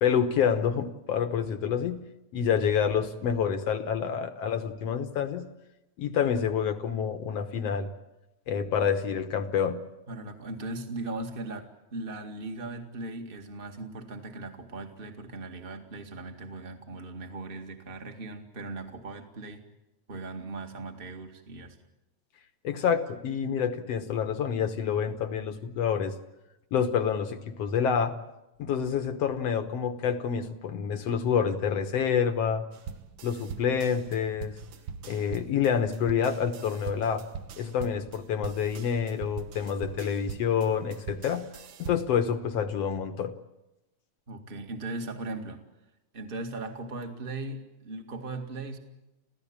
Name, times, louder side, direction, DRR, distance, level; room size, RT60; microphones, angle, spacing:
voice 1, 0.0-2.0 2.3-5.5 6.0-7.9 8.5-9.8 22.6-26.1 26.7-28.2 28.6-32.7 33.2-34.6 35.0-37.2 37.6-41.5 41.8-43.3, left 7 dB, 60° left, 9 dB, 2.0 m, -27 dB
voice 2, 10.1-19.6 20.1-21.8 44.3-45.6 46.1-48.8, right 2 dB, 20° right, 5 dB, 1.7 m, -38 dB
sound 1, 32.7-42.2, right 7 dB, 90° right, 1.0 m, -42 dB
28.0 x 16.0 x 8.8 m, 0.97 s
omnidirectional pair, 3.6 m